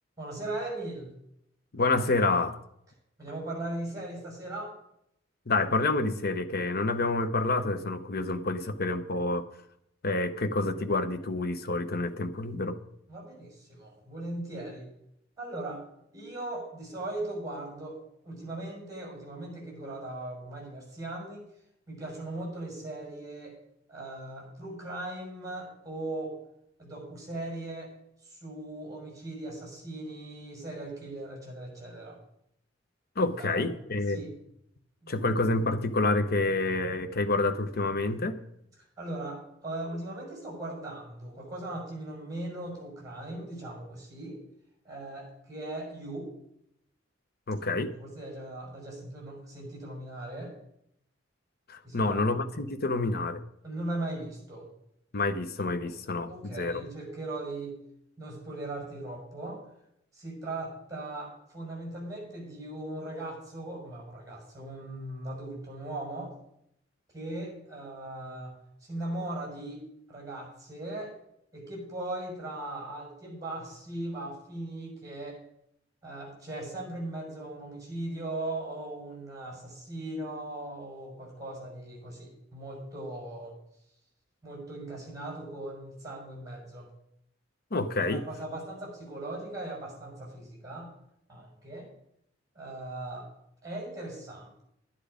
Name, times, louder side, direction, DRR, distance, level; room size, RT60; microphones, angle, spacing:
voice 1, 0.2-1.1 3.2-4.7 13.1-14.9 15.4-15.8 16.1-21.5 21.9-23.6 23.9-26.4 26.8-27.9 28.2-32.2 33.4-33.6 34.1-34.4 35.0-35.3 39.0-44.4 44.8-46.3 47.6-50.6 51.8-52.2 53.6-54.7 55.8-56.0 56.2-57.8 58.2-59.6 60.1-66.4 67.1-68.5 68.8-69.8 70.1-71.1 71.5-75.4 76.0-83.6 84.4-86.9 88.0-90.9 91.3-91.9 92.5-93.3 93.6-94.6, right 2 dB, 20° right, -2 dB, 5.9 m, -39 dB
voice 2, 1.7-2.6 5.5-9.5 10.0-12.8 33.2-34.2 35.1-38.4 47.5-47.9 51.7-53.4 55.1-56.8 87.7-88.2, left 2 dB, 55° left, 9 dB, 0.9 m, -28 dB
11.5 x 10.5 x 5.1 m, 0.75 s
head